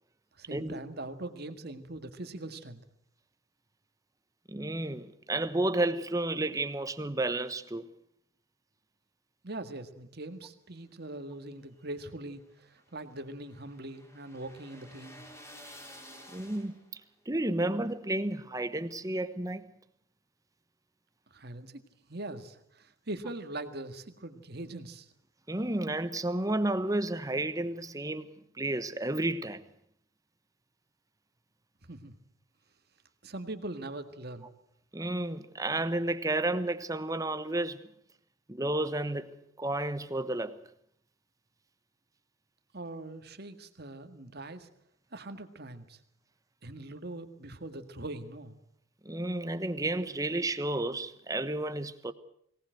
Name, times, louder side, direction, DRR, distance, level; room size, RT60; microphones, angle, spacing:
voice 1, 0.4-2.8 9.4-15.2 21.3-21.8 22.1-25.1 31.9-32.1 33.2-34.5 42.7-44.7 45.1-46.0 46.6-48.6, right 2 dB, 55° right, 1.9 m, -42 dB
voice 2, 4.5-7.9 16.3-16.8 17.3-19.6 25.5-29.6 34.9-37.8 38.5-40.6 49.0-52.1, right 2 dB, 20° right, 1.1 m, -31 dB
sound 1, 11.6-17.1, equal, 15° left, 4.2 m, -52 dB
23.0 x 18.5 x 7.9 m
head